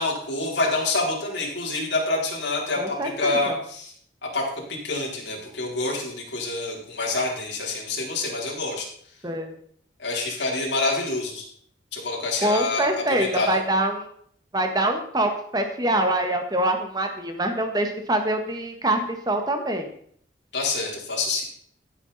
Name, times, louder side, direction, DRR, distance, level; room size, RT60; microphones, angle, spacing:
voice 1, 0.0-3.9 4.2-8.9 10.0-11.5 11.9-13.6 20.5-21.4, left 2 dB, 70° left, -3 dB, 4.2 m, -27 dB
voice 2, 2.8-3.5 9.2-9.5 12.4-14.1 14.5-19.9, right 1 dB, 20° right, 5 dB, 1.7 m, -25 dB
15.0 x 8.1 x 4.3 m, 0.62 s
head